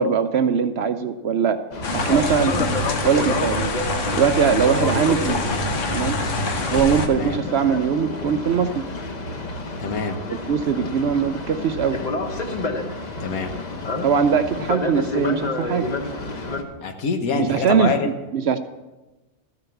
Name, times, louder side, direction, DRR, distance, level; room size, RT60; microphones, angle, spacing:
voice 1, 0.0-1.6 1.9-2.5 3.0-3.7 4.1-5.6 5.9-6.2 6.7-8.8 10.3-12.0 14.0-15.8 17.3-18.6, right 7 dB, 60° right, 10 dB, 0.7 m, -21 dB
Boat Water vehicle, 1.7-16.6, left 2 dB, 35° left, 1.0 m, -29 dB
sound 1, 1.8-7.1, left 2 dB, 60° left, 1.4 m, -25 dB
voice 2, 9.8-10.2 13.2-13.5 16.8-18.1, left 4 dB, 85° left, 6 dB, 1.6 m, -25 dB
13.5 x 6.8 x 7.0 m, 1.1 s
omnidirectional pair, 1.5 m